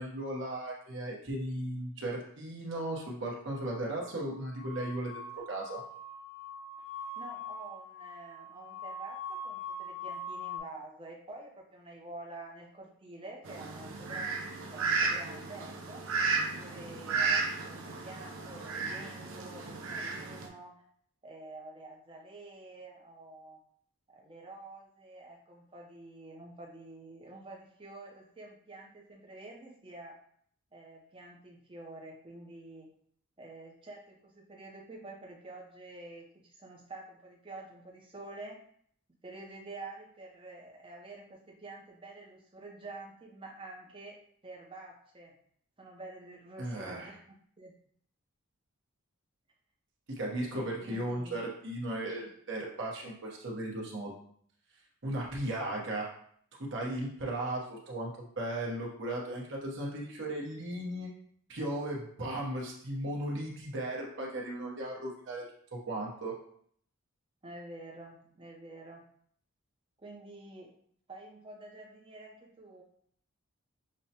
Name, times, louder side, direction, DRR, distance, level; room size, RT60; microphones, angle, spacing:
voice 1, 0.0-5.8 46.6-47.1 50.2-54.1 55.0-56.1 56.6-61.1 61.5-65.4 65.7-66.4, right 1 dB, 55° right, -2 dB, 1.0 m, -36 dB
sound 1, 3.4-10.6, left 2 dB, 50° left, 0.7 m, -43 dB
voice 2, 7.1-16.0 16.5-20.7 21.2-23.6 24.1-30.1 30.7-32.9 33.4-38.6 39.2-45.3 45.8-47.2 47.6-47.7 50.5-51.4 67.4-69.0 70.0-70.7 71.1-72.8, right 2 dB, 25° right, -1 dB, 0.6 m, -48 dB
Fowl, 13.4-20.5, right 4 dB, 70° right, 0.6 m, -34 dB
6.3 x 2.1 x 2.8 m, 0.63 s
head